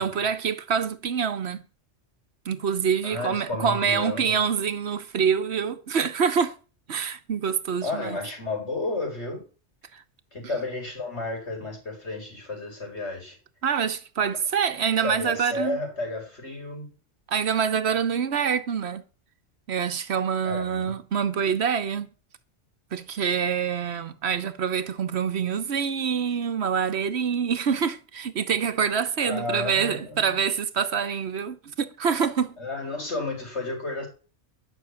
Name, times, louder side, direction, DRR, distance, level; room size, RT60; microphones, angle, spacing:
voice 1, 0.0-1.6 2.4-6.6 6.9-8.2 9.9-10.0 13.6-15.8 17.3-19.0 19.7-22.1 22.9-32.6, right 7 dB, 65° right, 1.1 m, -26 dB
voice 2, 3.0-4.4 7.8-9.4 10.3-13.4 15.0-16.9 20.4-20.9 29.2-30.3 32.6-34.1, left 2 dB, 70° left, 5.2 m, -32 dB
10.5 x 6.5 x 8.2 m
omnidirectional pair, 1.2 m